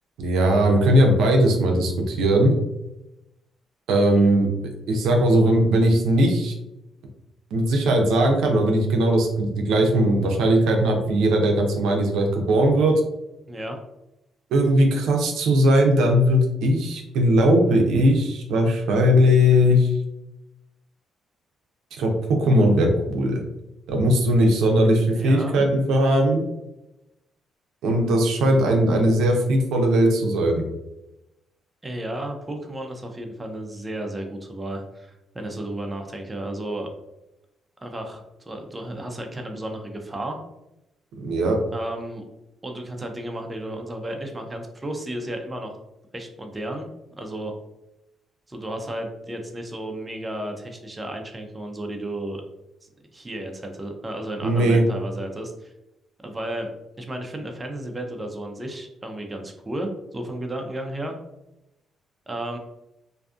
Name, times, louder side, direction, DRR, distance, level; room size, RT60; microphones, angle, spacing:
voice 1, 0.2-2.5 3.9-4.5 4.9-6.5 7.5-12.9 14.5-19.9 21.9-23.4 23.9-26.4 27.8-30.6 41.2-41.6 54.4-54.8, equal, 85° right, 2 dB, 0.5 m, -19 dB
voice 2, 25.1-25.6 31.8-36.9 37.8-40.4 41.7-42.2 42.6-45.8 46.1-46.9 47.2-47.5 48.5-52.4 53.1-55.7 56.2-56.7 57.0-61.1 62.3-62.6, right 1 dB, 20° right, 3 dB, 0.4 m, -33 dB
2.5 x 2.4 x 2.4 m, 0.91 s
cardioid pair, 90°, 0 cm